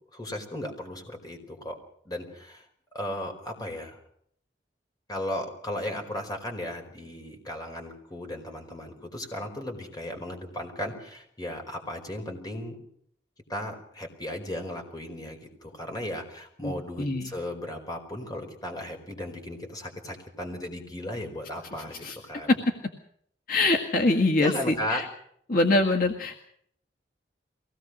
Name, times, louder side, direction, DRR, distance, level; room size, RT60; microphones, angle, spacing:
voice 1, 0.1-1.8 2.0-2.7 2.9-4.0 5.1-12.8 13.5-22.6 24.4-25.0, left 1 dB, 20° left, 3 dB, 4.9 m, -36 dB
voice 2, 16.6-17.3 22.0-22.2 22.5-22.6 23.5-25.1 25.5-26.4, left 2 dB, 55° left, 2 dB, 1.9 m, -24 dB
23.5 x 18.0 x 6.4 m, 0.67 s
head